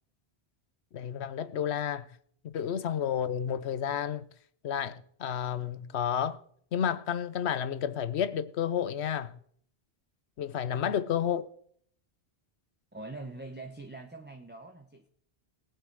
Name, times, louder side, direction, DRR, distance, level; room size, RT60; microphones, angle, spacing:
voice 1, 0.9-2.1 2.4-4.2 4.6-6.4 6.7-9.4 10.4-11.4, left 9 dB, 85° left, 1.0 m, -31 dB
voice 2, 12.9-15.1, right 2 dB, 10° right, 0.9 m, -44 dB
19.0 x 6.5 x 4.8 m
omnidirectional pair, 1.1 m